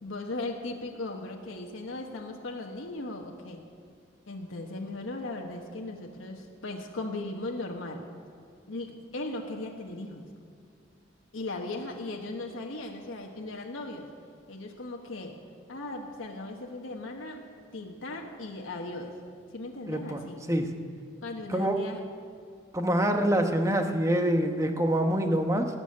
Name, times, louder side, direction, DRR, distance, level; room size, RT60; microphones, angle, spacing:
voice 1, 0.0-3.6 4.3-8.0 8.7-10.3 11.3-14.1 14.5-15.3 15.7-17.4 17.7-19.1 19.5-20.4 21.2-22.0, left 2 dB, 90° left, 1 dB, 1.3 m, -37 dB
voice 2, 19.9-20.7 21.5-21.8 22.7-25.7, right 1 dB, 15° right, 5 dB, 1.0 m, -26 dB
19.0 x 7.1 x 9.7 m, 2.2 s
head